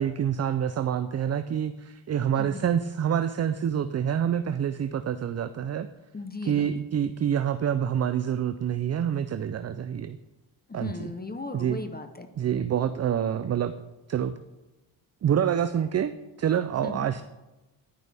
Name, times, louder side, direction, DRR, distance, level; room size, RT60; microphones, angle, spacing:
voice 1, 0.0-5.9 6.4-10.2 10.7-10.9 11.5-11.8 12.4-13.7 14.1-14.3 15.2-16.1 16.4-17.2, right 9 dB, 35° right, 11 dB, 0.4 m, -27 dB
voice 2, 2.4-2.7 6.1-6.7 10.7-12.3 16.8-17.1, left 3 dB, 20° left, 8 dB, 0.7 m, -37 dB
10.5 x 10.5 x 3.4 m, 1.0 s
cardioid pair, 95°, 48 cm